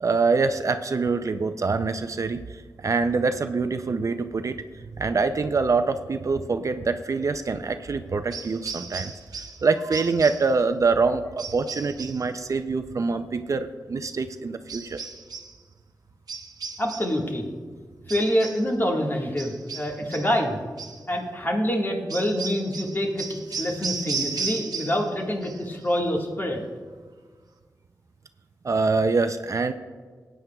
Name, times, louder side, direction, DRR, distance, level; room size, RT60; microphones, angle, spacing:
voice 1, 0.0-2.4 2.8-4.6 5.0-9.1 9.6-15.0 28.6-29.7, right 4 dB, 50° right, 9 dB, 0.4 m, -25 dB
sound 1, 8.3-9.6 9.9-10.5 11.4-12.3 14.7-15.6 16.3-17.2 18.1-18.7 19.4-20.4 20.8-21.0 22.1-25.1 25.4-25.9, right 5 dB, 65° right, 0.9 m, -35 dB
voice 2, 16.8-17.4 18.1-20.6 21.1-26.6, equal, 30° left, 0 dB, 1.6 m, -26 dB
18.5 x 9.1 x 2.3 m, 1.6 s
wide cardioid pair, 95°, 7 cm